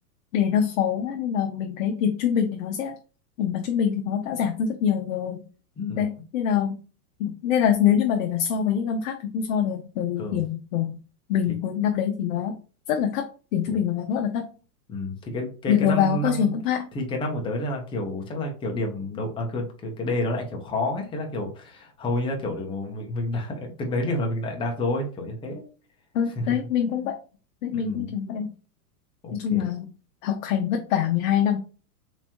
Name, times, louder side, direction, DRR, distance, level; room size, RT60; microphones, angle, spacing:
voice 1, 0.3-2.9 3.4-5.5 6.0-6.8 7.2-11.0 11.3-12.5 12.9-14.5 15.7-16.9 26.1-27.2 27.6-28.5 29.3-29.9 30.2-31.6, left 8 dB, 60° left, 5 dB, 0.6 m, -24 dB
voice 2, 14.9-16.6 16.9-25.6 26.4-26.6 27.7-28.1 29.2-29.7, left 1 dB, 10° left, 2 dB, 0.6 m, -29 dB
3.5 x 3.0 x 2.8 m, 0.36 s
hypercardioid pair, 135°, 46 cm